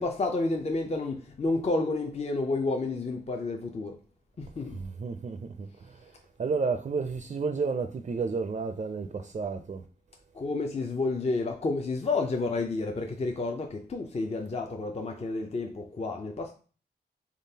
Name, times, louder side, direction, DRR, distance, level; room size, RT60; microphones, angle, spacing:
voice 1, 0.0-3.9 4.6-4.8 10.4-16.5, left 3 dB, 35° left, 0.5 m, -30 dB
voice 2, 4.7-6.1 6.4-9.8, right 4 dB, 40° right, 0.4 m, -31 dB
3.6 x 3.5 x 2.8 m
cardioid pair, 60°, 19 cm